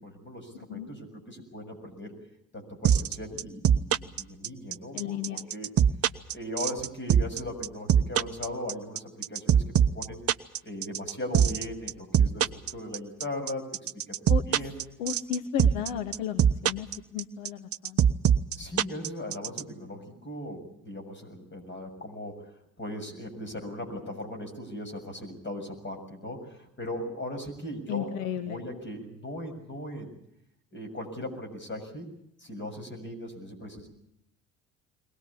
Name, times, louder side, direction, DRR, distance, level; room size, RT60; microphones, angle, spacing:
voice 1, 0.0-2.1 2.5-5.7 6.3-9.6 9.9-10.2 10.6-13.7 14.3-14.8 18.6-22.4 22.8-28.2 28.5-30.1 30.7-32.1 32.4-33.9, left 1 dB, 25° left, 4 dB, 7.1 m, -38 dB
sound 1, 2.8-19.6, right 8 dB, 35° right, 0.8 m, -22 dB
voice 2, 4.9-5.5 14.3-14.4 15.0-16.9 17.1-18.0 27.9-28.6, left 9 dB, 65° left, 10 dB, 1.2 m, -33 dB
22.5 x 19.0 x 8.4 m, 0.76 s
figure-of-eight pair, 55°, 41 cm